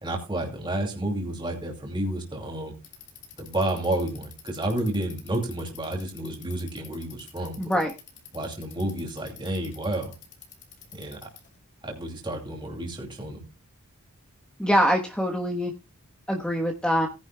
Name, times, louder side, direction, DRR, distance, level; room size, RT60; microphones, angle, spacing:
voice 1, 0.0-2.7 3.4-7.8 8.3-10.1 10.9-11.3 11.8-13.4, right 1 dB, 20° right, 0 dB, 2.6 m, -30 dB
Bicycle, 2.7-11.6, left 8 dB, 55° left, 3.3 m, -48 dB
voice 2, 7.6-7.9 14.6-15.7 16.3-17.1, equal, 5° left, 2 dB, 1.1 m, -24 dB
18.5 x 10.5 x 2.2 m, 0.27 s
head